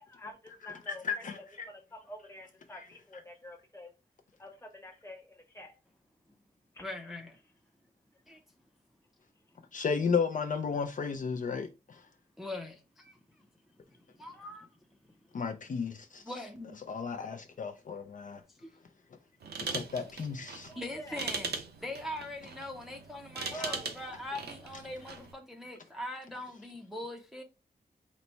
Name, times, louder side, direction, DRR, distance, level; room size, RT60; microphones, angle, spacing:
voice 1, 0.0-1.2 1.7-3.9 4.4-5.8 6.7-6.8 20.7-21.3 23.5-24.0, equal, 15° left, 0.9 m, -47 dB
voice 2, 1.0-1.7 2.8-2.9 9.7-12.0 15.3-16.2 16.9-18.4 19.7-20.7 23.5-23.6, left 5 dB, 50° left, 0.4 m, -33 dB
voice 3, 6.8-7.4 8.3-8.4 12.4-13.2 13.9-14.8 16.2-16.8 18.5-18.8 20.7-21.5 21.8-27.4, left 1 dB, ahead, 0.5 m, -42 dB
sound 1, 19.4-25.3, right 5 dB, 75° right, 0.7 m, -40 dB
4.1 x 2.1 x 4.3 m
wide cardioid pair, 125°, 16 cm